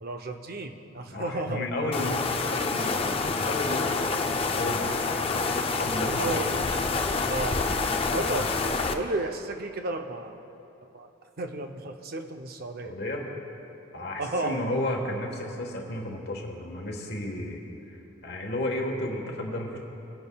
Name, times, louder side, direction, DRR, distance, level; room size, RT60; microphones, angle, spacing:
voice 1, 0.0-1.9 2.5-2.9 6.0-6.8 7.3-7.6 8.1-10.4 10.9-11.1 11.4-13.0 14.2-14.8, right 2 dB, 50° right, 5 dB, 0.6 m, -33 dB
voice 2, 1.1-5.1 5.7-6.4 12.8-13.3 13.9-19.8, left 1 dB, 55° left, 1 dB, 1.4 m, -33 dB
sound 1, 1.9-8.9, left 4 dB, 30° left, 0.4 m, -27 dB
21.5 x 10.5 x 2.3 m, 3.0 s
head